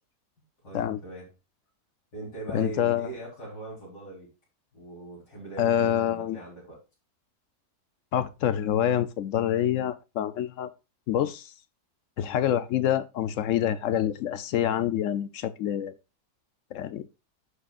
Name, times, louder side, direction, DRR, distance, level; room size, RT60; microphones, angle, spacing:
voice 1, 0.6-1.3 2.1-4.3 4.7-6.8, right 2 dB, 90° left, 4.8 m, -41 dB
voice 2, 2.5-3.1 5.6-6.4 8.1-10.7 11.1-11.5 12.2-15.9 16.7-17.0, left 10 dB, 65° left, 0.8 m, -26 dB
14.5 x 5.0 x 2.4 m
omnidirectional pair, 1.7 m